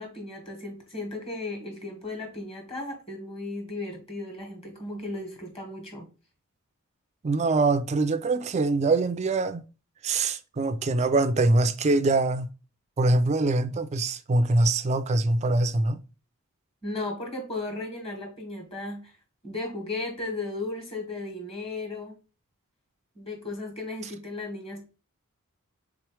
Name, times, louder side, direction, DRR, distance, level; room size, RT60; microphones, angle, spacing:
voice 1, 0.0-6.0 16.8-19.1 19.4-22.2 23.1-24.8, left 2 dB, 25° left, 1.6 m, -35 dB
voice 2, 7.2-9.6 10.0-12.5 13.0-16.0, right 2 dB, 30° right, 0.3 m, -23 dB
3.7 x 3.0 x 4.7 m
head